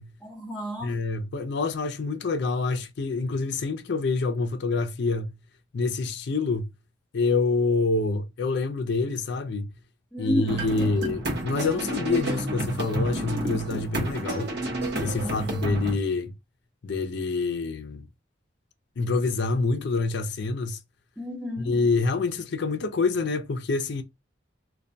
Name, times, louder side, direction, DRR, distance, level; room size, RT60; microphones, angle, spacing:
voice 1, 0.2-1.0 10.1-10.9 11.8-12.0 15.2-15.8 21.2-21.8, equal, ahead, 0.5 m, -32 dB
voice 2, 0.8-5.3 5.7-6.7 7.1-9.7 10.2-14.5 15.0-16.3 16.8-18.1 19.0-20.8 21.6-24.0, left 3 dB, 60° left, 0.4 m, -26 dB
sound 1, 10.5-15.9, right 1 dB, 55° right, 0.7 m, -30 dB
2.2 x 2.1 x 2.5 m
head